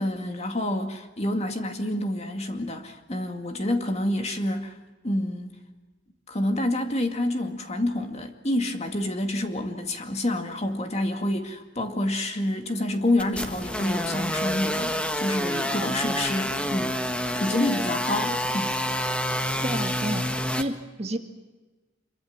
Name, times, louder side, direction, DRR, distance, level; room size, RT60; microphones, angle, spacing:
voice 1, 0.0-4.7 5.0-5.6 6.3-18.8, left 1 dB, 35° left, 5 dB, 2.2 m, -28 dB
sound 1, 13.2-20.6, equal, 5° left, 1.5 m, -28 dB
voice 2, 19.6-20.3 20.6-21.2, right 1 dB, 35° right, 5 dB, 2.0 m, -30 dB
26.0 x 23.5 x 7.5 m, 1.2 s
head